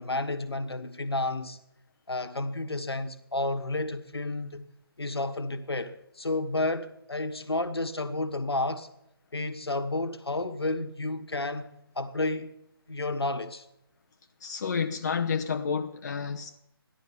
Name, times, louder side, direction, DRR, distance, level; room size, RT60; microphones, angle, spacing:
voice 1, 0.0-1.6 2.1-4.7 5.0-8.9 9.3-11.7 11.9-12.5 12.9-13.6, left 2 dB, 80° left, 1.4 m, -31 dB
voice 2, 14.4-16.6, left 6 dB, 45° left, 0.7 m, -30 dB
15.5 x 11.0 x 5.7 m
figure-of-eight pair, 150°, 13 cm